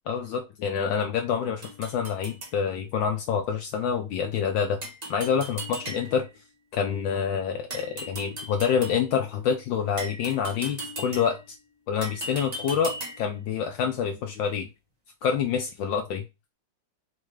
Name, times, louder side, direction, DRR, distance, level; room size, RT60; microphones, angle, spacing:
voice 1, 0.1-4.8 5.1-6.3 6.7-11.6 11.9-14.7 15.2-16.2, left 7 dB, 75° left, 4 dB, 1.1 m, -27 dB
sound 1, 1.6-2.6 4.8-6.3 7.7-9.1 10.0-11.5 12.0-13.4, right 1 dB, 85° right, 0.3 m, -38 dB
4.5 x 2.4 x 3.1 m, 0.25 s
omnidirectional pair, 2.4 m